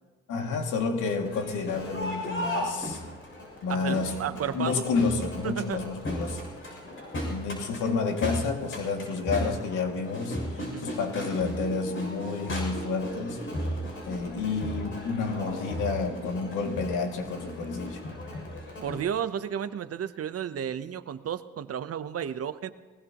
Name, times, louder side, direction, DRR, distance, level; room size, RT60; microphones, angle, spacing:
voice 1, 0.3-3.0 3.6-6.5 7.3-10.4 10.8-13.4 14.0-18.0, left 4 dB, 85° left, 3 dB, 2.4 m, -30 dB
Crowd, 1.2-19.0, equal, 40° left, 6.8 m, -36 dB
voice 2, 3.7-4.9 5.4-5.9 10.6-10.9 18.8-22.7, right 8 dB, 50° right, 12 dB, 0.9 m, -33 dB
22.5 x 20.0 x 3.0 m, 1.4 s
cardioid pair, 90°, 30 cm